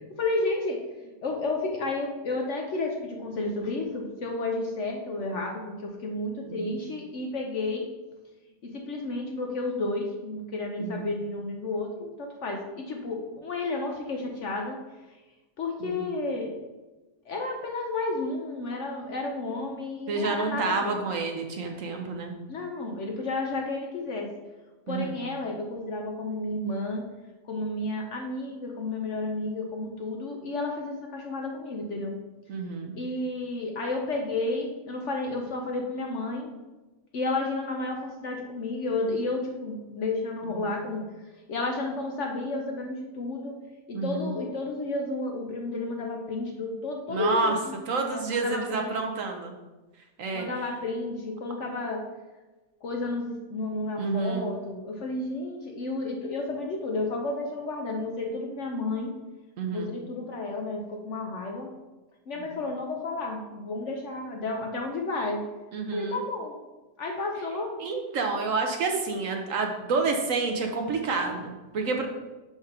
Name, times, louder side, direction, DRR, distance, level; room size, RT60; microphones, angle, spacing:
voice 1, 0.2-0.8 1.2-7.9 8.6-14.8 15.6-16.5 17.3-21.0 22.5-24.3 24.9-27.0 27.4-32.2 33.0-36.6 37.1-41.1 41.5-43.6 43.9-47.8 48.1-48.9 50.3-52.1 52.8-59.1 59.7-61.7 62.3-65.4 65.9-66.6 67.0-67.8, left 2 dB, 55° left, 1 dB, 0.9 m, -31 dB
voice 2, 10.8-11.1 15.8-16.1 20.1-22.3 24.9-25.2 32.5-32.9 40.6-40.7 43.9-44.3 47.1-47.5 47.9-49.6 50.2-50.5 54.0-54.5 59.6-59.9 65.7-66.2 67.8-72.1, right 4 dB, 60° right, 3 dB, 1.0 m, -29 dB
5.0 x 4.8 x 5.6 m, 1.2 s
omnidirectional pair, 1.7 m